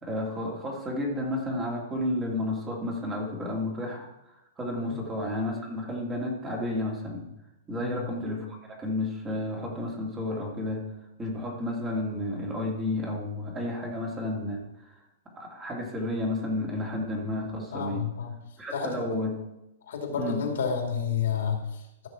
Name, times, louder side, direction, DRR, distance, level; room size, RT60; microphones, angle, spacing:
voice 1, 0.0-4.1 4.6-7.3 7.7-10.8 11.2-14.6 15.4-18.1 18.6-19.4 20.2-20.4, left 1 dB, 15° right, -1 dB, 2.4 m, -31 dB
voice 2, 7.8-8.1 17.7-18.4 18.7-19.0 19.9-22.1, left 7 dB, 75° left, 2 dB, 2.7 m, -30 dB
14.0 x 5.9 x 4.5 m, 0.90 s
hypercardioid pair, 140°, 0 cm